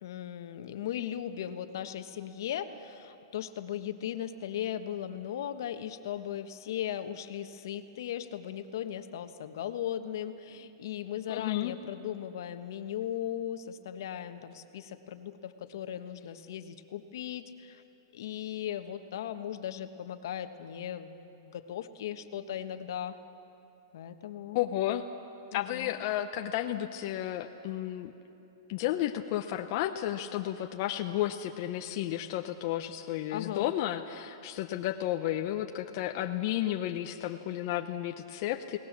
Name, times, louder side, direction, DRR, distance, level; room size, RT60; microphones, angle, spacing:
voice 1, 0.0-17.8 18.1-23.2 23.9-24.6 25.5-25.9 33.3-33.7, left 10 dB, 65° left, 9 dB, 1.3 m, -37 dB
voice 2, 11.3-11.8 24.5-25.0 25.5-28.1 28.7-38.8, left 13 dB, 40° left, 5 dB, 0.8 m, -32 dB
29.5 x 18.5 x 7.4 m, 3.0 s
hypercardioid pair, 155°, 2 cm